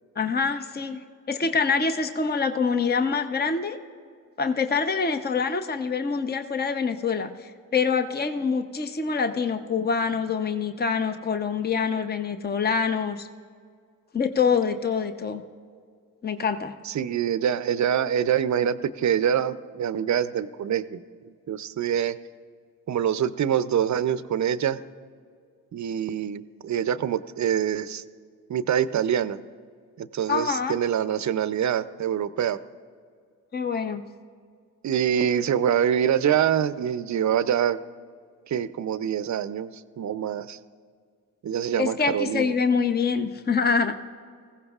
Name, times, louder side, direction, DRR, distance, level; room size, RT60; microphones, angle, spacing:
voice 1, 0.2-1.0 1.3-3.8 4.4-13.3 14.1-15.4 16.2-16.7 30.3-30.8 33.5-34.0 41.8-43.9, left 5 dB, 25° left, 8 dB, 0.8 m, -25 dB
voice 2, 16.9-22.2 22.9-24.8 25.7-28.0 28.5-29.4 30.0-32.6 34.8-37.8 38.5-39.7 40.0-40.6 41.4-42.5, right 9 dB, 45° right, 14 dB, 0.6 m, -25 dB
19.5 x 15.5 x 2.4 m, 2.1 s
supercardioid pair, 50°, 39 cm